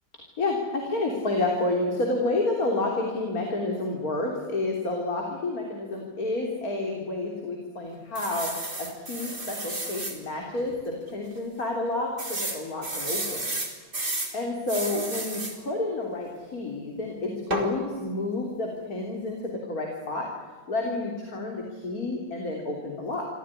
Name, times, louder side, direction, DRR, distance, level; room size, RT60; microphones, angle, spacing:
voice 1, 0.4-8.5 8.8-13.5 14.3-20.3 20.7-23.2, left 2 dB, 50° left, 0 dB, 3.9 m, -30 dB
sound 1, 8.2-10.2 10.7-10.8 11.1-11.2 12.2-14.3 14.7-15.6 17.5-17.7, right 2 dB, 25° right, 3.6 m, -32 dB
25.5 x 16.0 x 9.9 m, 1.5 s
omnidirectional pair, 2.0 m